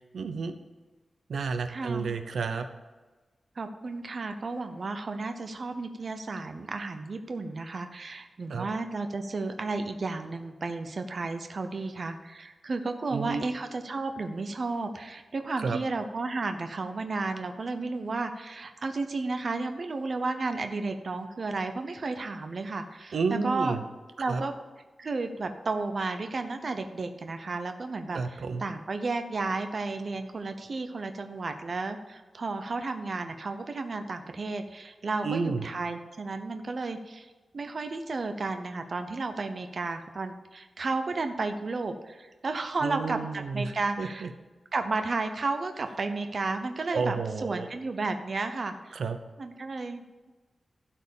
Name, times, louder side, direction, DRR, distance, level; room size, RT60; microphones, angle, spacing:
voice 1, 0.1-0.6 1.3-2.7 8.5-8.7 13.1-13.4 15.6-15.8 23.1-23.8 24.3-24.4 28.1-28.6 35.2-35.6 42.8-44.3 46.9-47.7 48.9-49.2, right 4 dB, 90° right, 8 dB, 0.7 m, -31 dB
voice 2, 1.7-2.1 3.6-23.8 24.2-24.5 25.0-44.3 44.7-47.2 47.4-49.0 49.4-50.0, right 3 dB, 45° right, 7 dB, 0.7 m, -33 dB
12.0 x 4.5 x 7.0 m, 1.2 s
wide cardioid pair, 175°, 0 cm